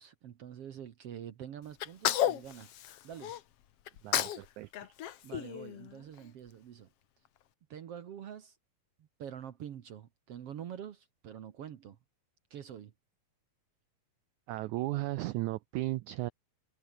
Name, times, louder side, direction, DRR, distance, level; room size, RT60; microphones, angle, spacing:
voice 1, 0.0-2.7 3.0-3.4 5.2-6.9 7.7-8.6 9.0-12.0 12.5-12.9, right 9 dB, 60° right, 1.7 m, -46 dB
Sneeze, 1.8-3.4 3.9-4.5 4.7-6.2, left 11 dB, 60° left, 1.6 m, -32 dB
voice 2, 4.0-4.9 14.5-16.3, right 18 dB, 90° right, 1.7 m, -35 dB
omnidirectional pair, 4.1 m